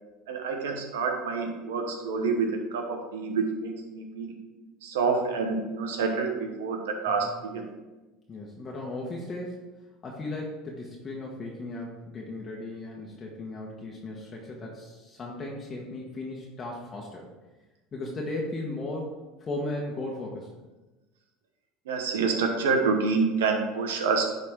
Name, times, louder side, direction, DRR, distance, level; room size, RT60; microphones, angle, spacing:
voice 1, 0.3-4.3 4.8-7.7 21.8-24.3, right 4 dB, 85° right, 3 dB, 1.2 m, -27 dB
voice 2, 8.3-9.7 10.0-17.3 17.9-20.5, left 2 dB, 30° left, -2 dB, 1.3 m, -36 dB
10.5 x 4.0 x 3.7 m, 1.1 s
hypercardioid pair, 90°, 0 cm